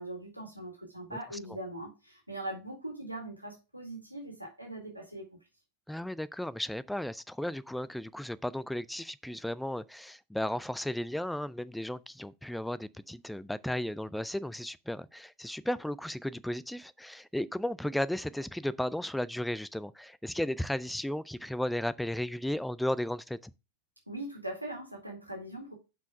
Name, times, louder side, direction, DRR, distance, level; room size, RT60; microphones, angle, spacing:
voice 1, 0.0-5.3 24.1-25.7, right 1 dB, 85° right, 2.0 m, -41 dB
voice 2, 5.9-23.5, left 1 dB, ahead, 0.4 m, -34 dB
5.7 x 4.7 x 6.2 m
figure-of-eight pair, 90°, 0 cm